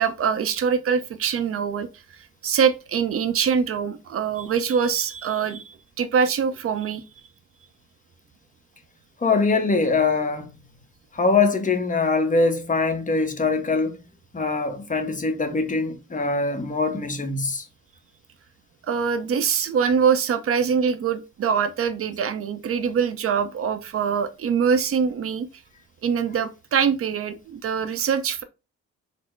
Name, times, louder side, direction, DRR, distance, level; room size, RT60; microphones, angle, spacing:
voice 1, 0.0-1.9 2.2-7.0 18.9-25.5 26.0-28.4, right 6 dB, 50° right, 0.6 m, -23 dB
voice 2, 9.2-10.5 11.1-14.0 14.3-17.6, left 3 dB, 25° left, 0.9 m, -23 dB
4.2 x 2.0 x 4.5 m
cardioid pair, 90°, 30 cm